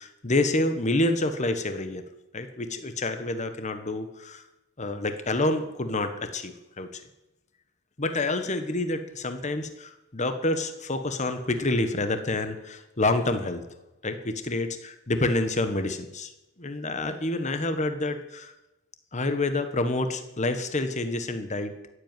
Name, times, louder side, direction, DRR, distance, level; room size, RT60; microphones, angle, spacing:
voice 1, 0.0-2.0 2.3-4.4 4.8-7.0 8.0-13.6 14.0-16.3 16.6-18.5 19.1-21.7, left 2 dB, 35° left, 8 dB, 1.3 m, -28 dB
14.5 x 8.1 x 9.1 m, 0.95 s
head